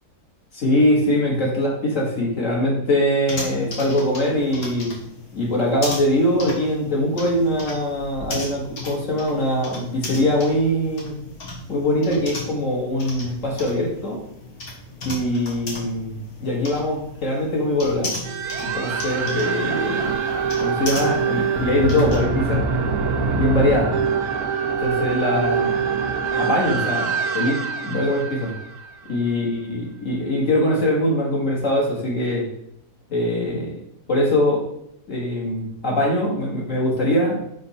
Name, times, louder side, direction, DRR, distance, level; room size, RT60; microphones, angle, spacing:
voice 1, 0.5-5.0 5.3-11.2 11.7-14.2 15.0-18.1 18.6-20.1 20.6-22.7 23.3-23.9 24.8-25.7 26.3-28.5 29.1-32.5 33.1-33.8 34.1-34.7 35.1-37.3, left 1 dB, 60° left, -3 dB, 2.0 m, -22 dB
sound 1, 3.3-22.2, left 2 dB, 80° left, 1.8 m, -36 dB
sound 2, 18.2-29.5, right 5 dB, 90° right, 1.2 m, -24 dB
5.3 x 4.3 x 4.2 m, 0.76 s
omnidirectional pair, 1.6 m